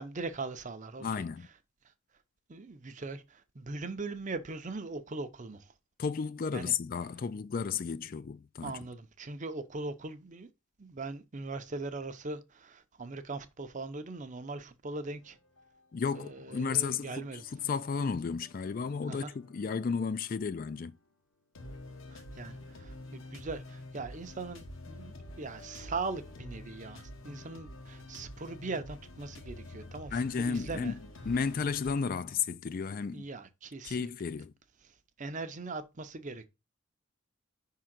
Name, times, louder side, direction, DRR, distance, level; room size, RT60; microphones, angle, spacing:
voice 1, 0.0-1.2 2.5-5.7 6.5-6.7 8.6-10.5 10.8-15.4 16.1-17.4 19.1-19.3 22.1-30.9 33.1-34.1 35.2-36.5, right 3 dB, 35° right, 0.6 m, -40 dB
voice 2, 1.0-1.5 6.0-8.8 15.9-21.0 30.1-31.0 31.3-33.3 33.8-34.5, left 5 dB, 40° left, 0.3 m, -33 dB
sound 1, 15.2-16.3 16.6-21.0 21.5-31.9, left 1 dB, 70° left, 1.1 m, -49 dB
5.5 x 3.7 x 5.9 m
head